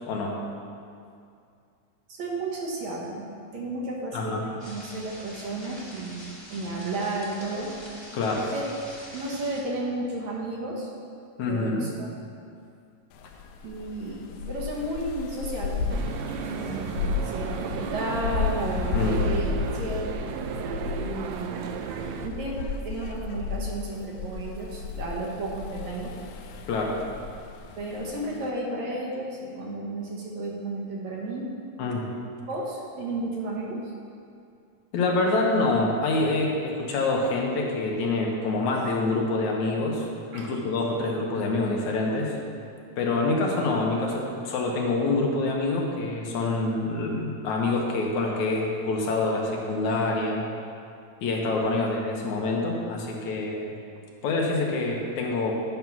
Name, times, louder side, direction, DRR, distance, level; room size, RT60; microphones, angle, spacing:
voice 1, 0.1-0.4 4.1-4.4 8.1-8.5 11.4-11.9 18.9-19.2 26.7-27.0 31.8-32.1 34.9-40.1 40.3-42.4 43.0-50.5 51.2-53.8 54.2-55.5, left 2 dB, 70° left, -1 dB, 2.3 m, -26 dB
voice 2, 2.1-7.7 8.5-8.7 9.1-10.9 11.5-12.1 13.6-14.2 14.5-15.9 16.4-19.5 19.7-20.2 21.0-21.7 22.2-26.1 27.8-31.5 32.5-33.9 40.3-40.5, right 2 dB, 65° right, -3 dB, 2.5 m, -33 dB
sound 1, 4.6-9.6, left 1 dB, 15° left, 1.0 m, -44 dB
sound 2, 13.1-28.5, left 5 dB, 90° left, 2.2 m, -33 dB
sound 3, 15.9-22.3, right 6 dB, 80° right, 1.6 m, -34 dB
10.5 x 5.5 x 6.0 m, 2.4 s
omnidirectional pair, 3.7 m